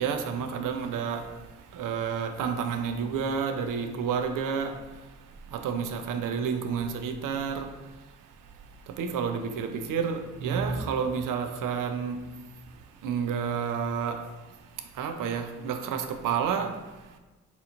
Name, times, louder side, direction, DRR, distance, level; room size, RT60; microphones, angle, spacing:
voice 1, 0.0-17.2, right 6 dB, 65° right, 0.5 m, -31 dB
4.0 x 2.9 x 2.5 m
supercardioid pair, 45°, 35 cm